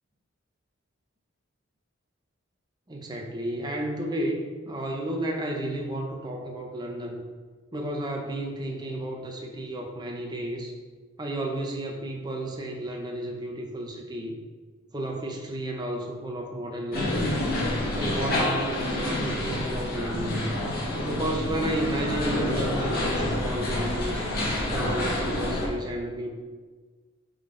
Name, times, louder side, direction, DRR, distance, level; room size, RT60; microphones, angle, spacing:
voice 1, 2.9-4.4 4.7-7.2 7.7-10.7 11.2-14.3 14.9-17.2 17.9-20.5 21.0-24.3 24.7-26.3, right 1 dB, 20° right, 0 dB, 0.7 m, -32 dB
sound 1, 16.9-25.7, left 1 dB, 50° left, 1.7 m, -28 dB
8.2 x 3.8 x 3.8 m, 1.4 s
head